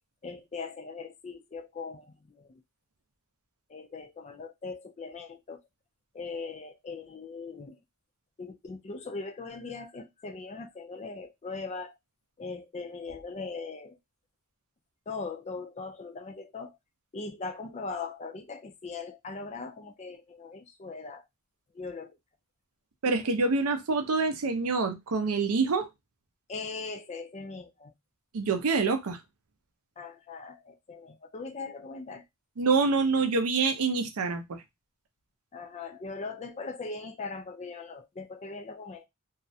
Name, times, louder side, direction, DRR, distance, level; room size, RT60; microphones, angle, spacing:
voice 1, 0.2-2.6 3.7-5.6 6.1-7.8 8.4-11.9 12.4-14.0 15.1-16.8 17.1-21.2 21.7-22.2 26.5-27.9 30.0-32.2 35.5-39.1, left 4 dB, 30° left, 0.3 m, -40 dB
voice 2, 23.0-25.9 28.3-29.2 32.6-34.6, right 4 dB, 75° right, 0.5 m, -26 dB
2.3 x 2.0 x 2.6 m
head